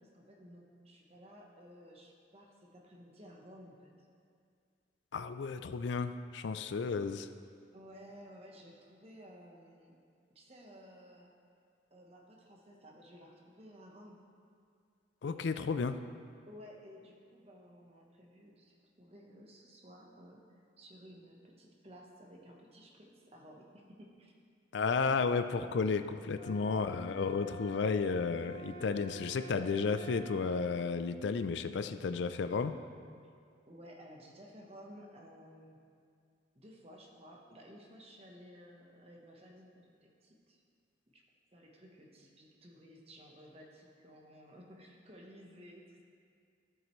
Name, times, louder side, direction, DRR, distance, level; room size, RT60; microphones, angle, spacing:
voice 1, 0.0-4.1 7.7-10.0 10.3-11.3 11.9-14.2 15.3-15.9 16.4-24.3 33.7-35.8 36.5-40.6 41.1-41.2 41.5-46.0, equal, 30° right, -1 dB, 1.0 m, -55 dB
voice 2, 5.1-7.3 15.2-16.0 24.7-32.8, left 4 dB, 65° left, 10 dB, 0.4 m, -33 dB
sound 1, 26.3-30.5, equal, 30° left, 0.8 m, -49 dB
12.5 x 7.6 x 3.1 m, 2.2 s
head